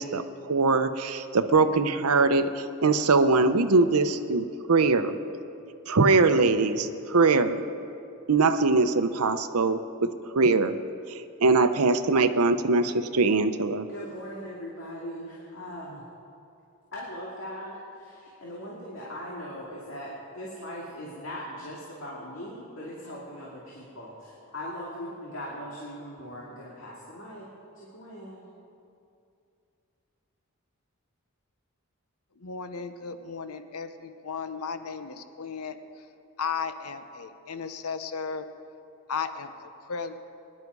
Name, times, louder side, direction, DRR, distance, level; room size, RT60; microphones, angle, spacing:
voice 1, 0.0-5.2 5.9-7.7 8.3-10.1 10.3-10.8 11.1-13.9, right 3 dB, 85° right, 10 dB, 0.8 m, -22 dB
voice 2, 13.9-16.1 16.9-27.5 27.7-28.5, equal, 60° left, -5 dB, 2.3 m, -40 dB
voice 3, 32.4-35.8 36.4-38.4 39.1-40.2, left 5 dB, 85° left, 9 dB, 0.8 m, -35 dB
23.0 x 11.0 x 4.8 m, 2.6 s
head